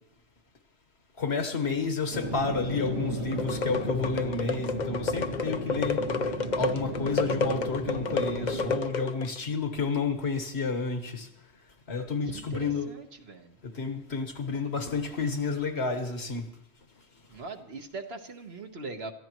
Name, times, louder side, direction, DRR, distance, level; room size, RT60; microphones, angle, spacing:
voice 1, 1.2-11.3 11.9-12.9 13.6-16.5, left 4 dB, 70° left, 1.7 m, -31 dB
sound 1, 2.1-8.8, right 2 dB, 90° right, 2.9 m, -35 dB
sound 2, 3.3-9.4, left 4 dB, 50° left, 0.7 m, -31 dB
voice 2, 12.3-13.6 17.3-19.1, right 3 dB, 65° right, 1.6 m, -40 dB
26.5 x 14.5 x 3.1 m
omnidirectional pair, 1.1 m